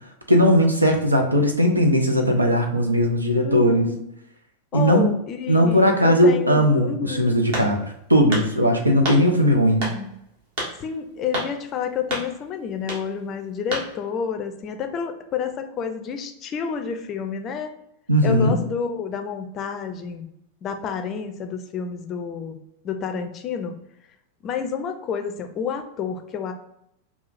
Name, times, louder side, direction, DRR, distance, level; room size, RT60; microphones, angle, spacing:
voice 1, 0.3-3.9 4.7-5.1 5.5-7.8 8.1-9.8 18.1-18.6, equal, 85° right, 3 dB, 0.6 m, -18 dB
voice 2, 3.4-4.0 4.7-7.4 9.0-10.2 10.8-17.7 18.2-20.3 20.6-22.6 22.8-23.8 24.4-26.5, left 7 dB, 30° left, 6 dB, 0.5 m, -29 dB
sound 1, 7.5-7.9 8.3-8.5 9.1-9.2 9.8-10.0 10.6-10.7 11.3-11.5 12.1-12.3 12.8-13.0 13.7-13.9, right 1 dB, 55° right, 1.4 m, -28 dB
5.5 x 2.4 x 2.5 m, 0.78 s
figure-of-eight pair, 90°, 0 cm